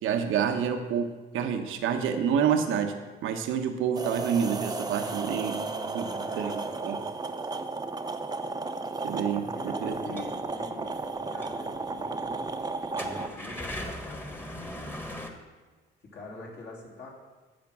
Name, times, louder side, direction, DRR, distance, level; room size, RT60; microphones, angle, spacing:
voice 1, 0.0-2.9 3.2-5.6 5.9-6.1 6.3-6.5 6.8-7.0 9.0-9.5 9.8-10.2, right 7 dB, 85° right, 6 dB, 1.0 m, -28 dB
sound 1, 3.9-13.3, right 3 dB, 20° right, 0.7 m, -34 dB
voice 2, 5.5-6.7 9.3-12.5 13.0-15.0 16.0-17.1, left 2 dB, 60° left, -3 dB, 3.2 m, -44 dB
sound 2, 10.2-10.3 11.0-11.1 11.4-11.5 11.9-12.0 12.8-15.3, left 1 dB, 10° left, 1.4 m, -38 dB
14.0 x 5.1 x 6.1 m, 1.3 s
cardioid pair, 90°, 20 cm